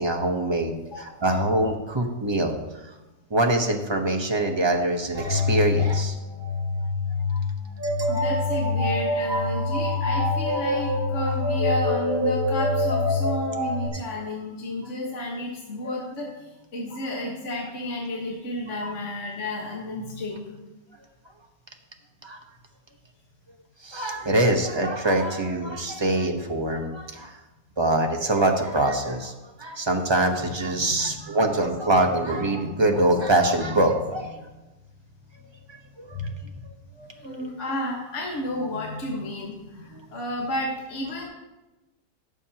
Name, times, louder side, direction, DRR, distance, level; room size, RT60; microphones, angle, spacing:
voice 1, 0.0-2.6 2.8-2.9 3.3-6.1 7.3-7.4 7.8-8.2 15.8-16.0 18.8-18.9 22.2-22.4 23.8-27.4 27.8-29.3 29.6-34.5 36.0-36.5 37.0-37.4, right 1 dB, 25° right, 2 dB, 0.7 m, -24 dB
voice 2, 0.9-1.2 8.0-20.6 30.8-31.2 31.5-31.6 37.2-41.2, left 1 dB, 45° left, -2 dB, 1.6 m, -32 dB
sound 1, 5.1-13.9, left 2 dB, 10° left, 1.3 m, -25 dB
17.0 x 7.1 x 2.9 m, 1.1 s
omnidirectional pair, 1.9 m